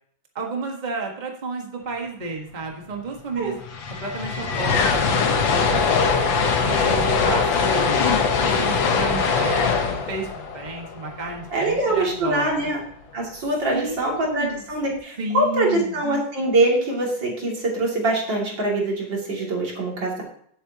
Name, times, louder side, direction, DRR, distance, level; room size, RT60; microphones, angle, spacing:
voice 1, 0.3-3.6 4.0-5.8 6.6-8.0 8.3-12.7 13.7-14.6 15.2-16.0, right 3 dB, 25° right, 0 dB, 1.6 m, -32 dB
sound 1, 3.2-3.3 3.5-11.7, left 5 dB, 85° left, 1.9 m, -22 dB
voice 2, 11.5-12.8 13.1-20.2, right 2 dB, 75° right, -2 dB, 3.4 m, -23 dB
17.0 x 8.1 x 2.9 m, 0.65 s
omnidirectional pair, 2.0 m